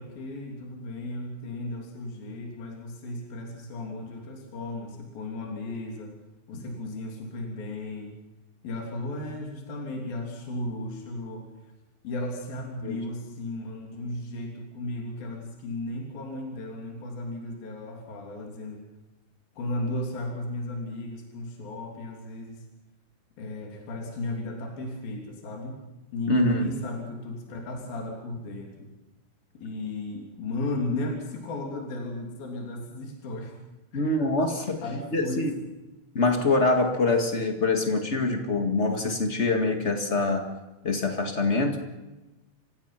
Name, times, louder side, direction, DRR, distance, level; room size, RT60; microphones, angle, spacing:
voice 1, 0.0-6.2 6.5-8.1 8.6-11.5 12.0-18.8 19.6-22.6 23.4-25.8 26.1-28.9 29.6-33.5 33.9-34.1 34.8-35.5, left 2 dB, 65° left, 1 dB, 4.9 m, -35 dB
voice 2, 26.3-26.7 33.9-34.8 35.1-35.5 36.1-40.5 40.8-41.8, left 3 dB, 50° left, 4 dB, 0.8 m, -24 dB
29.5 x 16.5 x 5.8 m, 1.0 s
omnidirectional pair, 4.6 m